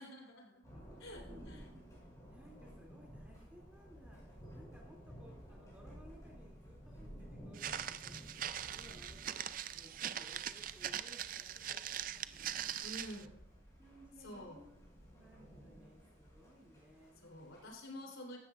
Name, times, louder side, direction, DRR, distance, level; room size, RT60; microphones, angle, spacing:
voice 1, 0.0-0.6 1.0-1.6 12.8-13.3 14.2-14.6 17.2-18.4, equal, 90° left, 0 dB, 3.8 m, -49 dB
Thunder, 0.6-17.7, equal, 15° left, 5.9 m, -55 dB
voice 2, 2.3-13.3 13.7-14.7 15.1-17.5, equal, 5° right, -2 dB, 2.8 m, -61 dB
Walk footsteps, 7.5-13.2, right 10 dB, 45° right, 0.4 m, -42 dB
17.0 x 12.5 x 2.5 m, 0.78 s
head